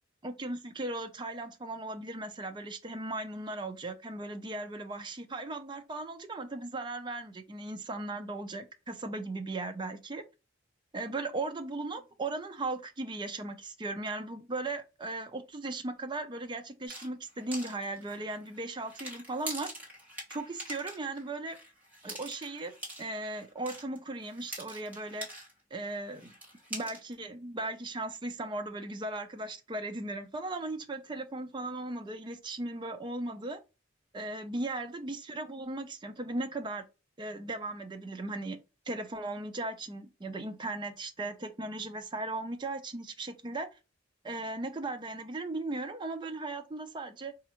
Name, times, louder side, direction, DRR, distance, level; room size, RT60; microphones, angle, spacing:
voice 1, 0.2-10.2 10.9-19.7 20.3-21.6 22.0-22.7 23.0-25.3 25.7-26.3 26.7-33.6 34.1-36.8 37.2-38.6 38.9-43.7 44.2-47.3, right 2 dB, 25° right, 0.5 m, -37 dB
sound 1, 16.9-25.6 25.9-27.1, right 1 dB, 10° right, 1.3 m, -44 dB
4.1 x 2.4 x 2.9 m
head